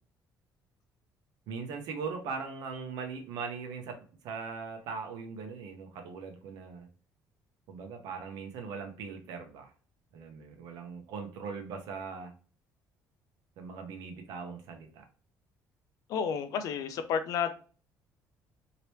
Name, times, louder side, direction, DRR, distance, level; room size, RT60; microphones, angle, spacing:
voice 1, 1.5-4.0 4.2-6.9 7.7-9.7 10.1-12.3 13.6-15.0, right 5 dB, 75° right, 0.8 m, -40 dB
voice 2, 16.1-17.6, left 7 dB, 60° left, 0.4 m, -31 dB
3.2 x 2.9 x 2.9 m
cardioid pair, 165°, 7 cm